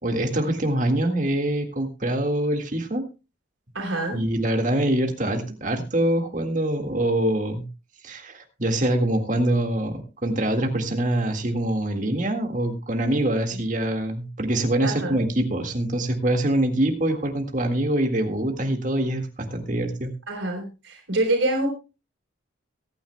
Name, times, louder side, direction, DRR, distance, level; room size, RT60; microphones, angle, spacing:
voice 1, 0.0-3.0 4.1-7.7 8.0-20.1, right 1 dB, 40° right, 4 dB, 1.8 m, -24 dB
voice 2, 3.7-4.2 13.5-13.6 14.8-15.2 20.3-21.7, right 2 dB, 85° right, 1 dB, 3.8 m, -26 dB
22.5 x 9.5 x 2.2 m, 0.30 s
head